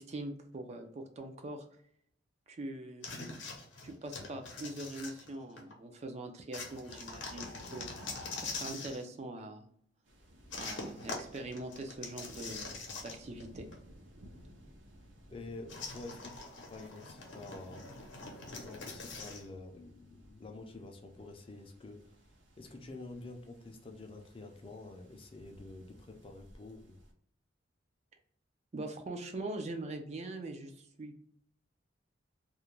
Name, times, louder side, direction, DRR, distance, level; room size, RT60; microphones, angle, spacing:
voice 1, 0.0-1.7 2.5-3.1 3.8-7.9 8.4-9.6 10.5-12.7 13.0-13.7 28.7-31.1, right 2 dB, 35° right, 6 dB, 0.4 m, -42 dB
sound 1, 3.0-5.7 6.5-9.0 10.5-13.4 13.7-13.8 15.7-19.5, left 3 dB, 75° left, 0.7 m, -43 dB
sound 2, 10.1-27.1, equal, 70° right, 0.6 m, -59 dB
voice 2, 15.3-16.4 16.7-18.1 18.4-22.0 22.6-27.0, left 2 dB, 30° left, 4 dB, 0.4 m, -48 dB
2.4 x 2.1 x 3.0 m, 0.64 s
head